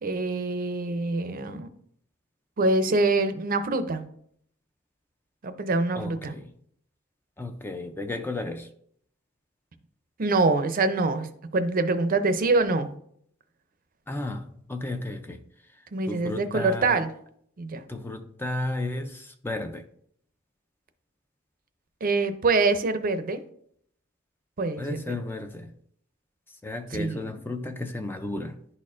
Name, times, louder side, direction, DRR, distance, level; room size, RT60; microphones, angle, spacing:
voice 1, 0.0-1.7 2.6-4.0 5.4-6.3 10.2-11.3 11.5-12.9 15.9-17.1 17.6-17.8 22.0-23.4 24.6-25.0 26.9-27.4, right 3 dB, 45° right, 10 dB, 0.5 m, -25 dB
voice 2, 6.0-6.5 7.4-8.7 14.1-15.4 16.1-17.0 17.9-19.8 24.8-25.7 26.6-28.6, left 2 dB, 10° left, 7 dB, 0.4 m, -33 dB
11.0 x 4.2 x 2.5 m, 0.66 s
head